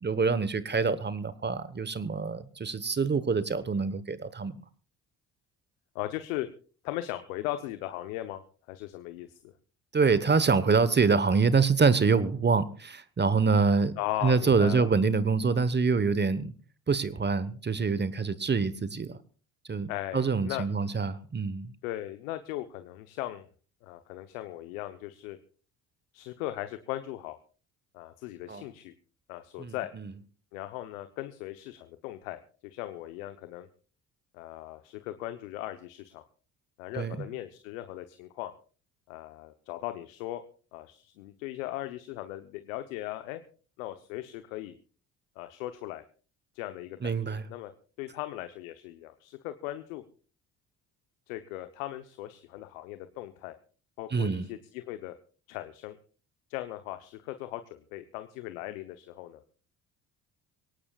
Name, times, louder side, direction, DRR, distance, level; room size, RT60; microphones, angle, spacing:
voice 1, 0.0-4.6 9.9-13.9 14.2-16.5 16.9-19.2 19.7-21.7 28.5-28.6 29.6-30.1 36.9-37.2 47.0-47.4 54.1-54.5, right 4 dB, 25° right, 15 dB, 1.2 m, -26 dB
voice 2, 5.9-6.5 6.8-8.4 8.7-9.5 14.0-14.9 19.9-20.6 21.8-23.5 23.8-25.4 26.1-27.4 27.9-28.9 29.3-29.9 30.5-33.7 34.3-36.2 36.8-38.5 39.1-40.4 40.7-43.4 43.8-44.7 45.4-46.0 46.5-47.7 48.0-50.0 51.3-53.5 54.0-55.1 55.5-56.0 56.5-59.4, left 15 dB, 80° left, 9 dB, 1.0 m, -38 dB
23.0 x 18.0 x 2.4 m, 0.37 s
hypercardioid pair, 60°, 40 cm